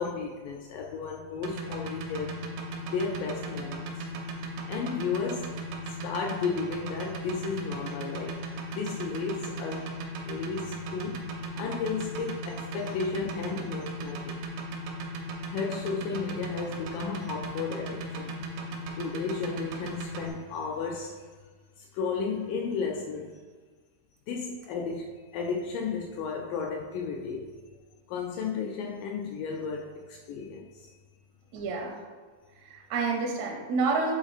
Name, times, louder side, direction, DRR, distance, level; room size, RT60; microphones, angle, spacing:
voice 1, 0.0-2.5 2.9-4.1 4.7-5.6 5.9-10.0 10.3-11.3 11.6-14.4 15.5-18.5 18.9-21.3 21.8-23.4 24.3-27.5 28.1-30.9, left 5 dB, 80° left, 1 dB, 2.0 m, -34 dB
sound 1, 1.4-20.2, right 3 dB, 90° right, 2.7 m, -37 dB
voice 2, 31.5-32.0 32.6-34.1, right 4 dB, 70° right, -1 dB, 1.7 m, -29 dB
7.9 x 3.9 x 4.0 m, 1.4 s
omnidirectional pair, 4.2 m